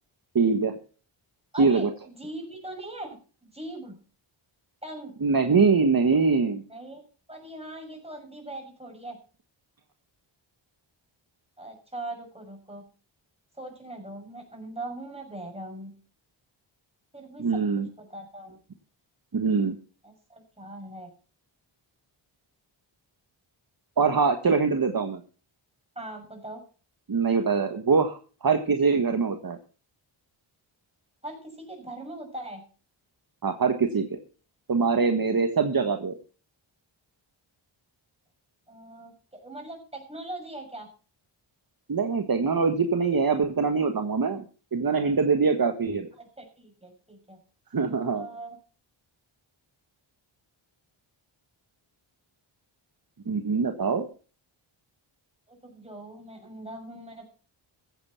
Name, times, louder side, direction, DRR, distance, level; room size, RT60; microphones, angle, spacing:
voice 1, 0.3-0.7 1.6-1.9 5.2-6.6 17.4-17.9 19.3-19.7 24.0-25.2 27.1-29.6 33.4-34.2 34.7-36.1 41.9-44.4 44.7-46.1 47.7-48.3 53.3-54.0, right 5 dB, 45° right, 6 dB, 1.5 m, -23 dB
voice 2, 1.5-3.9 4.8-5.1 6.7-7.0 7.3-9.2 11.6-12.8 13.6-15.9 17.1-17.6 18.0-18.6 20.0-21.1 25.9-26.6 31.2-32.6 38.7-40.9 46.2-47.4 48.1-48.6 55.5-57.3, right 1 dB, 10° right, 3 dB, 6.5 m, -40 dB
15.0 x 9.2 x 5.8 m, 0.38 s
wide cardioid pair, 75°, 49 cm